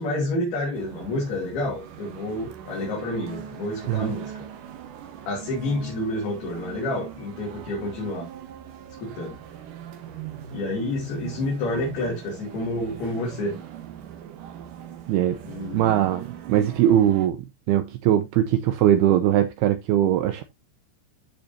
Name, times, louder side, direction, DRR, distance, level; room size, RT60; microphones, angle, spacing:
voice 1, 0.0-4.5 5.3-8.3 9.0-9.4 10.5-13.6 15.5-16.0, left 1 dB, 60° left, 4.7 m, -29 dB
sound 1, 0.7-17.3, right 10 dB, 65° right, 2.3 m, -40 dB
voice 2, 15.7-20.4, right 11 dB, 80° right, 2.3 m, -21 dB
14.0 x 5.2 x 2.7 m
omnidirectional pair, 5.1 m